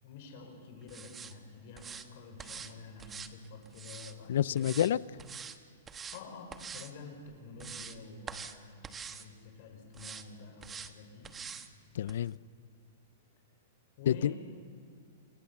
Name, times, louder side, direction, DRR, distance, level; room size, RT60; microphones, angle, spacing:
voice 1, 0.0-4.8 5.9-11.4 14.0-14.4, left 4 dB, 50° left, 5.5 m, -49 dB
sound 1, 0.9-1.3 1.8-2.1 2.4-2.7 3.0-4.1 4.6-4.9 5.2-5.6 5.9-6.2 6.5-6.9 7.3-8.0 8.3-8.6 8.8-9.3 9.9-10.2 10.6-10.9 11.2-11.7 12.1-12.2, right 6 dB, 15° right, 1.1 m, -45 dB
voice 2, 4.3-5.0 11.9-12.4 14.1-14.3, left 10 dB, 75° left, 0.5 m, -28 dB
27.5 x 22.5 x 7.3 m
hypercardioid pair, 150°, 0 cm